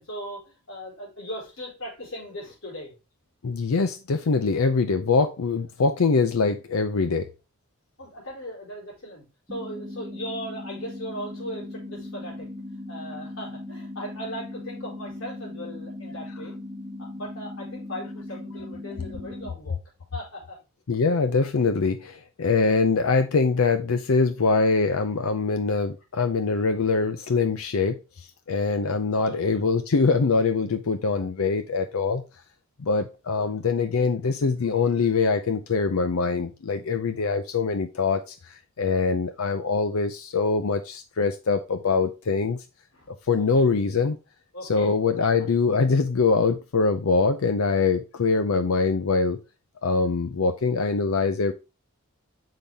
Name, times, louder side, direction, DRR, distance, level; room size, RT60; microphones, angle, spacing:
voice 1, 0.0-2.9 8.0-12.5 12.9-16.5 17.0-19.8 20.1-20.6 29.2-29.7 33.4-33.5 42.9-43.1 43.4-43.6 44.5-45.3, equal, 70° left, -3 dB, 4.6 m, -38 dB
voice 2, 3.4-7.3 20.9-32.2 32.8-42.6 43.3-44.2 44.7-49.4 49.8-51.5, left 4 dB, 90° left, 9 dB, 0.6 m, -23 dB
sound 1, 9.5-19.5, left 1 dB, 15° right, 1.0 m, -38 dB
7.0 x 5.8 x 3.5 m, 0.29 s
head